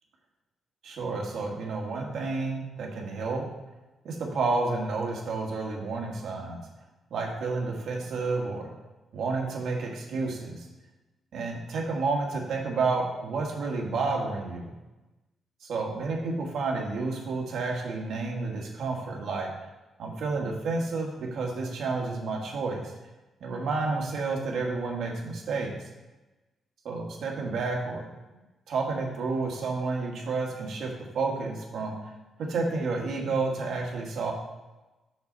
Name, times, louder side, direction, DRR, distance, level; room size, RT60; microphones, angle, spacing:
voice 1, 0.8-3.4 4.0-6.6 7.1-8.7 9.1-10.7 11.3-14.7 15.7-19.5 20.0-22.9 23.4-25.7 26.8-28.0 28.7-30.9 31.1-32.1 32.5-34.3, right 3 dB, 70° right, -1 dB, 1.6 m, -30 dB
6.6 x 5.9 x 4.0 m, 1.1 s
cardioid pair, 140°, 0 cm